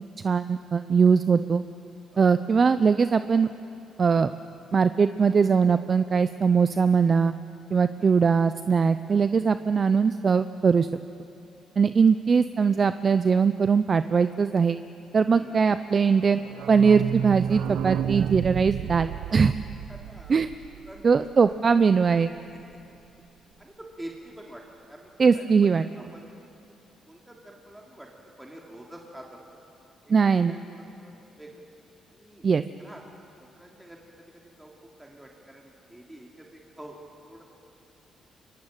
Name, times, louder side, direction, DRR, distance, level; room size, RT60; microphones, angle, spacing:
voice 1, 0.2-1.6 2.2-3.5 4.0-4.3 4.7-7.3 7.7-10.9 11.8-14.8 15.1-16.4 16.7-19.5 20.3-20.5 21.0-22.3 25.2-25.9 30.1-30.6 32.4-32.6, right 5 dB, 40° right, 12 dB, 0.6 m, -21 dB
voice 2, 15.3-15.8 18.8-18.9 19.9-20.4 20.8-21.3 22.7-22.8 23.6-24.6 24.9-26.3 27.1-29.6 30.2-31.6 32.1-32.5 32.8-33.0 33.4-34.7 35.0-37.0 37.2-37.4, right 1 dB, 10° right, -1 dB, 3.2 m, -47 dB
sound 1, 16.2-21.7 22.1-22.2 22.3-22.4 22.7-22.8, right 9 dB, 80° right, 0.7 m, -32 dB
24.5 x 23.5 x 9.0 m, 2.8 s
cardioid pair, 90°, 0 cm